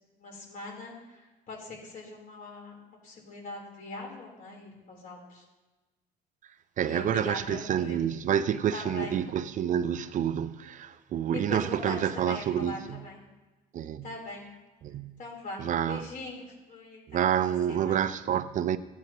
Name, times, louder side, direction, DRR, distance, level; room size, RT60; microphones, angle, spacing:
voice 1, 0.2-1.2 1.5-2.8 3.0-5.4 6.8-8.1 8.7-9.1 11.3-13.2 14.0-14.4 15.2-18.0, left 2 dB, 55° left, 3.7 m, -41 dB
voice 2, 6.8-13.0 13.7-14.1 14.8-15.1 15.6-16.0 17.1-18.8, right 9 dB, 50° right, 0.4 m, -28 dB
16.0 x 9.2 x 2.9 m
cardioid pair, 110°, 17 cm